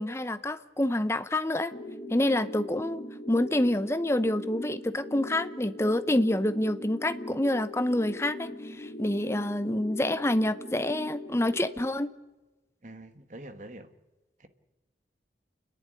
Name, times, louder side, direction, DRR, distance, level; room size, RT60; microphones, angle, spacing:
voice 1, 0.0-1.7 2.1-12.1, left 1 dB, 15° left, 0.7 m, -27 dB
sound 1, 1.7-11.7, left 1 dB, 35° left, 2.5 m, -40 dB
voice 2, 12.8-13.9 14.4-14.5, right 1 dB, 45° right, 1.5 m, -45 dB
29.5 x 11.0 x 9.8 m
head